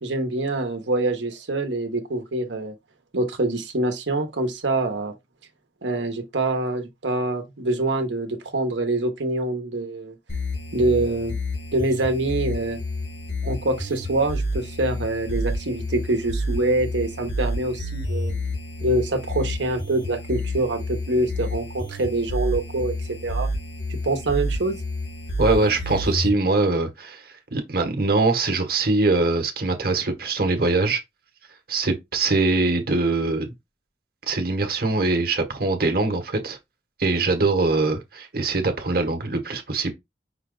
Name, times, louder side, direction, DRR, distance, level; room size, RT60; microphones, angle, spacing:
voice 1, 0.0-2.7 3.1-5.1 5.8-10.2 10.7-11.4 11.7-12.8 13.4-18.5 18.8-22.9 23.2-23.5 24.0-24.8, right 2 dB, 90° right, 1.1 m, -25 dB
sound 1, 10.3-26.3, left 1 dB, 85° left, 1.6 m, -29 dB
voice 2, 25.4-31.0 31.7-33.5 34.3-36.6 37.0-39.9, right 3 dB, 55° right, 1.2 m, -22 dB
5.7 x 2.3 x 3.8 m
head